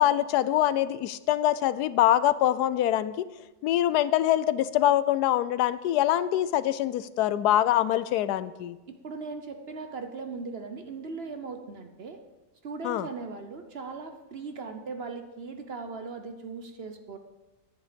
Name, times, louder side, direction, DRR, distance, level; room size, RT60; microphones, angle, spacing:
voice 1, 0.0-3.3 3.6-8.8 12.8-13.1, left 12 dB, 90° left, 16 dB, 1.1 m, -24 dB
voice 2, 8.9-12.2 12.6-17.2, right 4 dB, 50° right, 6 dB, 0.9 m, -38 dB
10.0 x 9.7 x 5.1 m, 1.1 s
omnidirectional pair, 1.6 m